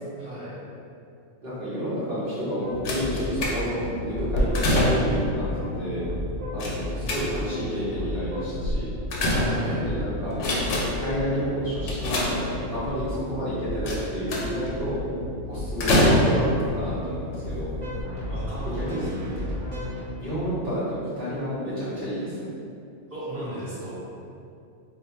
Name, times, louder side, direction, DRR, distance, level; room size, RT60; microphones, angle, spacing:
voice 1, 0.2-0.5 6.7-7.1 9.5-9.8 18.3-19.4 23.1-24.0, right 1 dB, 15° right, -12 dB, 1.0 m, -36 dB
voice 2, 1.4-5.5 5.7-6.0 6.5-8.9 9.6-10.3 10.9-12.4 12.7-15.0 15.5-17.7 18.7-19.1 20.2-22.5, equal, 50° right, -12 dB, 0.9 m, -30 dB
sound 1, 2.6-20.0, left 1 dB, 85° right, 1.2 m, -34 dB
sound 2, 2.9-3.9 4.3-5.3 6.6-7.6 8.6-9.9 10.3-11.1 11.9-12.9 13.9-14.7 15.8-16.6 17.5-17.6 17.9-18.0, left 1 dB, 80° left, 0.9 m, -24 dB
2.4 x 2.3 x 4.0 m, 2.5 s
omnidirectional pair, 1.2 m